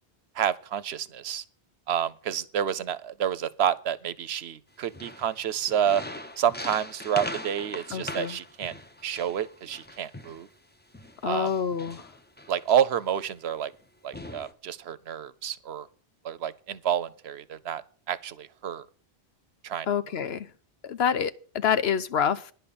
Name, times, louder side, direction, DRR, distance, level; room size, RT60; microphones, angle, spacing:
voice 1, 0.3-1.4 1.9-6.0 6.4-8.7 9.0-10.5 11.2-11.5 12.5-13.7 14.0-15.9 16.2-18.9 19.6-19.9, right 9 dB, 80° right, 0.9 m, -29 dB
sound 1, 4.8-10.4 10.9-13.1 13.7-13.8 14.1-14.5, left 1 dB, 10° left, 0.7 m, -41 dB
voice 2, 7.9-8.4 11.2-12.1 19.9-20.5 20.8-22.5, left 7 dB, 70° left, 1.0 m, -27 dB
10.5 x 5.7 x 8.6 m
omnidirectional pair, 1.1 m